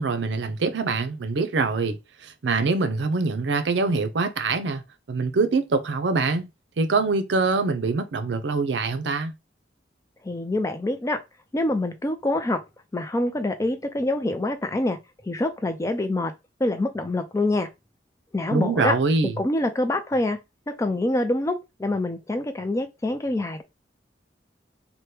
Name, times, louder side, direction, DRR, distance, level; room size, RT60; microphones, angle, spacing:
voice 1, 0.0-4.8 5.1-6.5 6.8-9.3 18.5-19.4, right 3 dB, 75° right, 0.5 m, -24 dB
voice 2, 10.2-11.2 11.5-12.6 12.9-15.0 15.2-16.3 16.6-17.7 18.3-18.9 19.4-20.4 20.7-23.6, left 1 dB, 15° left, 0.4 m, -25 dB
2.9 x 2.2 x 3.2 m
head